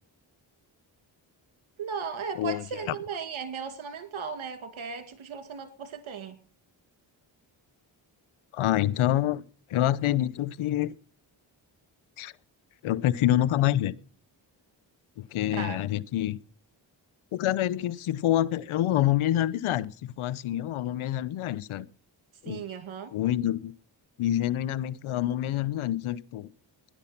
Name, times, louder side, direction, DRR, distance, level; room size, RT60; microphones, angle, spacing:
voice 1, 1.8-6.4 15.5-15.8 22.5-23.1, right 6 dB, 75° right, 2.4 m, -36 dB
voice 2, 2.4-2.9 8.5-9.4 9.7-10.9 12.2-12.3 12.8-13.9 15.2-16.4 17.3-21.9 22.4-22.6 23.1-23.7 24.2-26.5, left 13 dB, 90° left, 0.8 m, -27 dB
16.5 x 11.0 x 5.8 m
cardioid pair, 50°, 48 cm